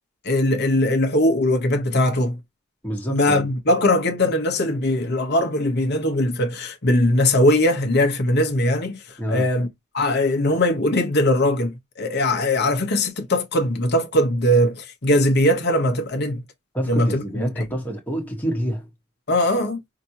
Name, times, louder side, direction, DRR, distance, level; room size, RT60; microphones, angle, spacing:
voice 1, 0.2-2.4 3.1-9.0 9.3-9.7 9.9-16.4 16.9-17.5 19.3-19.8, left 1 dB, 50° left, 1.1 m, -20 dB
voice 2, 2.8-3.5 9.2-9.5 16.7-18.9, right 1 dB, 10° left, 1.3 m, -27 dB
5.1 x 2.8 x 2.8 m
head